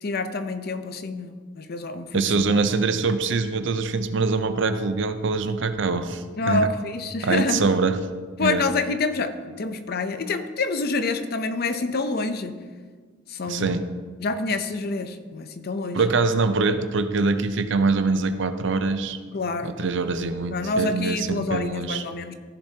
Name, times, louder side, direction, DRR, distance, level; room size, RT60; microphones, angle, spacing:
voice 1, 0.0-2.6 2.9-3.0 6.4-7.6 8.4-12.6 13.3-13.8 14.2-16.0 19.3-19.7 20.5-22.3, left 3 dB, 50° left, 10 dB, 0.6 m, -27 dB
voice 2, 2.1-6.7 7.2-8.0 8.4-8.6 13.5-13.8 15.9-19.2 19.6-22.0, right 4 dB, 65° right, 10 dB, 0.6 m, -24 dB
14.5 x 6.9 x 2.8 m, 1.5 s
head